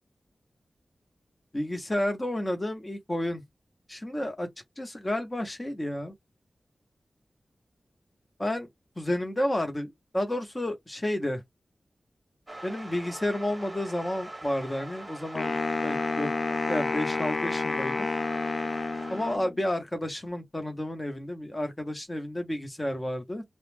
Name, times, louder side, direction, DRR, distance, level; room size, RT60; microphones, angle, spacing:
voice 1, 1.5-3.4 3.9-4.5 4.8-6.1 8.4-8.7 9.0-11.4 12.6-15.6 15.8-16.3 16.7-18.1 19.1-23.4, left 1 dB, 25° left, 0.8 m, -31 dB
sound 1, 12.5-19.4, right 1 dB, 20° right, 0.9 m, -43 dB
Wind instrument woodwind instrument, 15.4-19.6, left 3 dB, 55° left, 0.4 m, -30 dB
2.3 x 2.1 x 3.3 m
wide cardioid pair, 75°, 0 cm